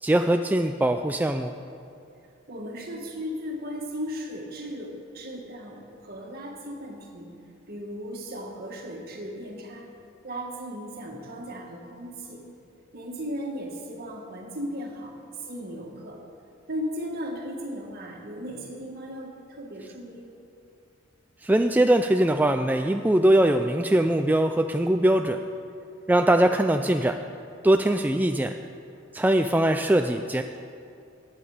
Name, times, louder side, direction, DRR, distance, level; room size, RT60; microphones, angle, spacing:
voice 1, 0.0-1.5 21.4-25.4 26.1-27.1 27.6-28.5 29.1-30.4, right 1 dB, 10° right, 6 dB, 0.3 m, -21 dB
voice 2, 2.5-7.3 7.7-9.9 10.2-12.4 12.9-16.2 16.7-20.3, equal, 50° right, 0 dB, 1.9 m, -36 dB
15.5 x 9.2 x 5.0 m, 2.5 s
head